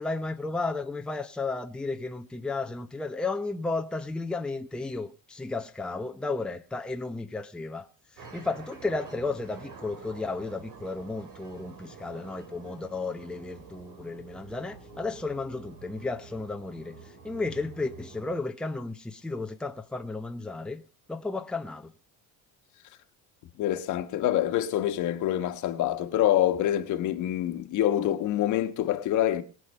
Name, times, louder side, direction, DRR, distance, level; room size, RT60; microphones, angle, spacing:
voice 1, 0.0-7.9 8.1-20.8 21.1-21.9, left 3 dB, 5° left, 0.7 m, -33 dB
sound 1, 8.2-18.4, right 4 dB, 80° right, 3.8 m, -48 dB
voice 2, 23.6-29.4, left 12 dB, 65° left, 1.3 m, -26 dB
21.0 x 7.6 x 5.4 m
cardioid pair, 140°, 33 cm